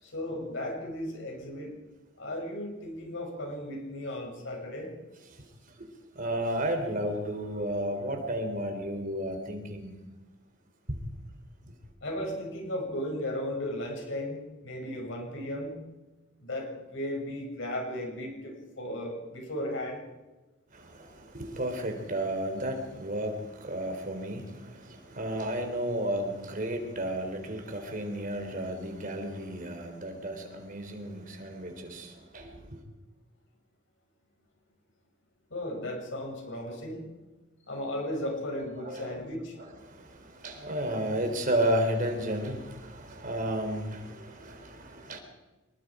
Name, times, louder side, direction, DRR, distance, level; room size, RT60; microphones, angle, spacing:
voice 1, 0.0-1.7 2.2-4.9 12.0-15.7 16.4-20.0 35.5-37.0 37.6-39.6, left 1 dB, 65° left, 1 dB, 6.9 m, -35 dB
voice 2, 6.2-9.9 10.9-11.0 20.7-32.6 38.8-39.2 39.6-45.2, right 1 dB, 40° right, 5 dB, 3.8 m, -33 dB
25.5 x 22.5 x 5.0 m, 1.1 s
head